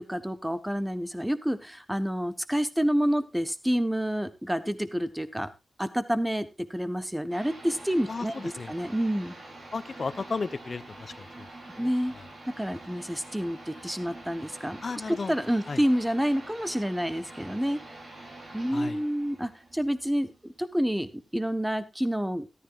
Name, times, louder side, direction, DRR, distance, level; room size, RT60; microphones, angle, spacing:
voice 1, 0.0-5.5 5.8-8.3 8.7-9.3 11.8-12.1 12.6-14.8 15.3-17.8 18.5-20.3 20.6-22.5, equal, 5° right, 12 dB, 1.2 m, -28 dB
sound 1, 7.3-20.7, right 2 dB, 75° right, 7.8 m, -46 dB
voice 2, 8.1-8.7 9.7-12.3 14.8-15.3 15.7-15.8 18.7-19.0, left 4 dB, 55° left, 14 dB, 0.8 m, -35 dB
14.0 x 12.5 x 2.5 m, 0.24 s
cardioid pair, 60°, 0 cm